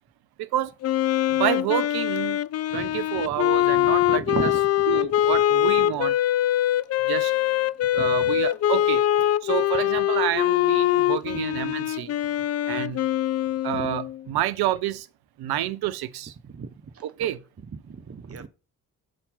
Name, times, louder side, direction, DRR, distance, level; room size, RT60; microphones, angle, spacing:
voice 1, 0.4-0.7 1.4-2.4 2.7-4.5 4.9-6.1 7.1-7.3 7.9-9.0 9.4-12.1 12.7-13.0 13.6-15.1 15.4-16.3 17.0-17.4, right 12 dB, 55° right, 0.7 m, -28 dB
Wind instrument woodwind instrument, 0.8-14.2, left 13 dB, 35° left, 0.4 m, -23 dB
voice 2, 2.7-3.0 3.8-4.6 8.0-8.3 11.3-11.4 13.7-13.8 16.4-17.3 17.7-18.5, right 6 dB, 30° right, 1.1 m, -35 dB
7.5 x 4.3 x 5.7 m
hypercardioid pair, 40°, 46 cm